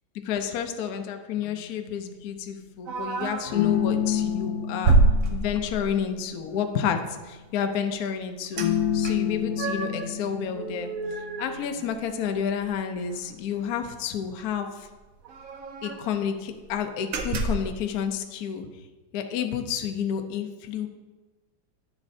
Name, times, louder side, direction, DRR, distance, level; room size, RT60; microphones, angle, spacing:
voice 1, 0.2-5.0 5.3-8.6 8.9-10.9 11.4-14.9 15.8-18.7 19.1-20.9, left 8 dB, 70° left, 6 dB, 0.9 m, -30 dB
sound 1, 1.5-2.5 3.5-7.6 8.6-11.8, left 9 dB, 85° left, 1.5 m, -30 dB
sound 2, 2.9-3.6 4.1-4.3 4.8-6.0 8.6-8.7 9.0-10.1 10.5-12.3 12.6-12.7 13.1-13.3 14.4-14.5 14.7-14.8 15.2-16.1 16.6-16.7 17.1-17.7, right 3 dB, 65° right, 0.8 m, -26 dB
9.7 x 7.3 x 2.6 m, 1.2 s
omnidirectional pair, 2.2 m